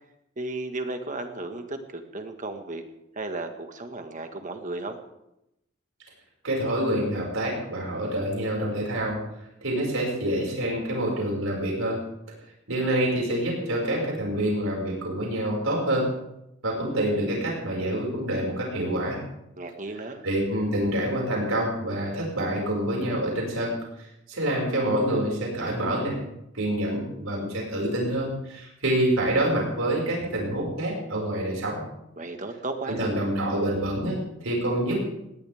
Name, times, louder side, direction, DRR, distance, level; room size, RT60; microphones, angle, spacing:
voice 1, 0.4-2.8 3.2-5.0 19.6-20.2 32.2-33.1, right 2 dB, 40° right, 6 dB, 1.7 m, -34 dB
voice 2, 6.4-9.2 9.6-12.0 12.7-16.1 16.6-19.2 20.2-23.7 24.0-26.2 26.5-31.8 32.9-35.0, right 1 dB, 80° right, -2 dB, 5.7 m, -27 dB
19.5 x 18.0 x 3.6 m, 0.85 s
head